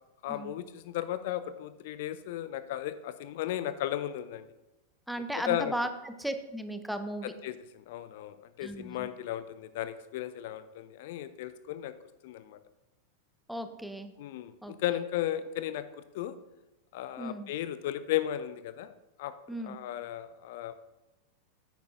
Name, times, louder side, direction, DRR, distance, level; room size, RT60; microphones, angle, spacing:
voice 1, 0.2-4.5 5.4-5.7 7.4-11.9 12.2-12.6 14.2-15.9 16.1-16.3 16.9-18.9 19.2-19.3 19.6-20.7, left 12 dB, 50° left, 13 dB, 0.4 m, -35 dB
voice 2, 5.1-7.3 8.6-9.1 13.5-14.1 14.6-14.7 17.2-17.5 19.5-19.8, right 1 dB, ahead, 8 dB, 0.7 m, -36 dB
10.0 x 8.8 x 2.6 m, 0.99 s
figure-of-eight pair, 90°, 0 cm